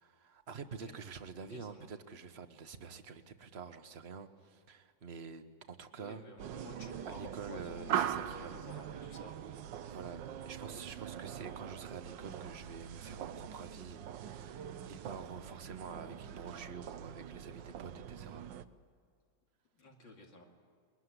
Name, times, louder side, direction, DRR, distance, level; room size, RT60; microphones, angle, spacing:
voice 1, 0.0-6.2 7.1-8.7 9.9-18.5, right 5 dB, 40° right, 9 dB, 1.3 m, -47 dB
voice 2, 1.4-1.9 2.8-3.0 6.0-9.4 10.6-10.8 19.7-20.4, left 2 dB, 80° left, 0 dB, 3.2 m, -52 dB
sound 1, 6.4-18.6, right 10 dB, 75° right, 1.5 m, -42 dB
22.0 x 22.0 x 9.8 m, 2.2 s
omnidirectional pair, 2.0 m